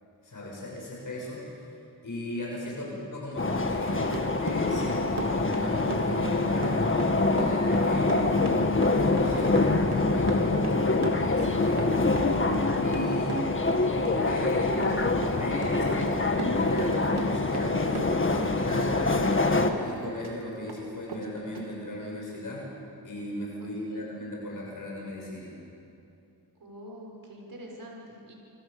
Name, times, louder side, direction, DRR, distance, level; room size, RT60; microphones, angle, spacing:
voice 1, 0.2-1.7 2.0-8.3 8.8-12.1 12.8-13.4 13.8-14.8 15.3-22.7 23.0-25.6, left 1 dB, 50° left, -3 dB, 7.0 m, -36 dB
voice 2, 2.8-3.1 23.6-24.1 26.6-28.3, equal, 60° right, -1 dB, 6.3 m, -46 dB
sound 1, 3.4-19.7, left 3 dB, 30° left, 1.9 m, -25 dB
Run, 3.7-18.5 18.8-20.4 20.7-20.8 21.1-21.2 21.5-21.7, right 4 dB, 75° right, 3.4 m, -38 dB
29.0 x 25.5 x 7.1 m, 2.7 s
wide cardioid pair, 100°, 40 cm